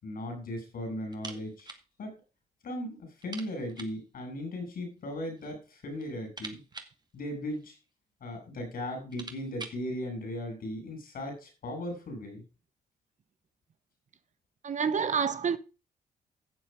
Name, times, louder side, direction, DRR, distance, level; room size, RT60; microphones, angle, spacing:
voice 1, 0.0-1.7 2.0-2.2 2.6-6.6 7.1-7.8 8.2-12.4, left 1 dB, 65° left, 7.0 m, -37 dB
sound 1, 1.1-1.9 2.1-2.2 2.6-2.7 3.2-4.1 5.0-5.6 5.9-7.9 8.6-8.7 8.9-9.9, right 3 dB, 25° right, 2.2 m, -46 dB
voice 2, 14.6-15.6, right 6 dB, 50° right, 1.1 m, -28 dB
12.0 x 7.3 x 5.2 m
supercardioid pair, 65°, 16 cm